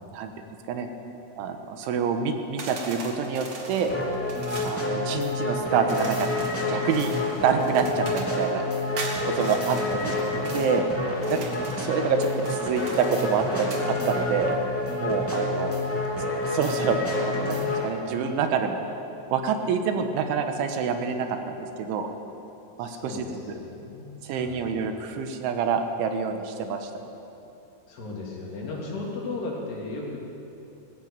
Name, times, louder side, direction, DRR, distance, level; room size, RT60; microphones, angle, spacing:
voice 1, 1.4-3.9 4.6-6.3 6.7-7.1 7.4-8.6 9.4-10.2 10.5-10.9 11.3-11.5 11.8-14.6 15.0-15.8 16.5-18.8 19.3-22.1 22.8-23.3 24.2-26.9, right 6 dB, 80° right, 6 dB, 3.5 m, -27 dB
sound 1, 2.6-4.8 5.9-8.5 9.0-10.7 11.2-11.9 12.4-13.9, right 3 dB, 45° right, 1.8 m, -40 dB
sound 2, 3.9-17.9, left 2 dB, 20° left, 0.4 m, -28 dB
voice 2, 9.3-10.4 15.4-15.9 22.8-24.7 27.9-30.2, left 3 dB, 60° left, -3 dB, 5.2 m, -37 dB
20.0 x 15.5 x 8.9 m, 2.8 s
omnidirectional pair, 5.7 m